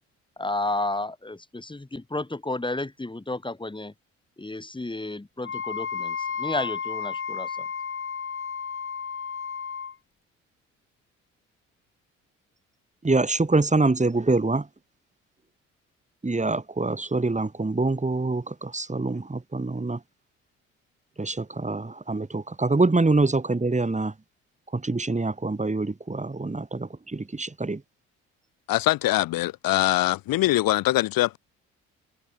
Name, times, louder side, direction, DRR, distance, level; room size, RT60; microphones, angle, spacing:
voice 1, 0.4-3.9 4.4-7.6, left 2 dB, 15° left, 3.2 m, -32 dB
Wind instrument woodwind instrument, 5.4-10.0, left 6 dB, 35° left, 2.1 m, -32 dB
voice 2, 13.0-14.7 16.2-20.0 21.2-24.1 24.7-27.8, right 3 dB, 20° right, 5.9 m, -25 dB
voice 3, 28.7-31.4, left 16 dB, 65° left, 3.4 m, -23 dB
hypercardioid pair, 50°, 37 cm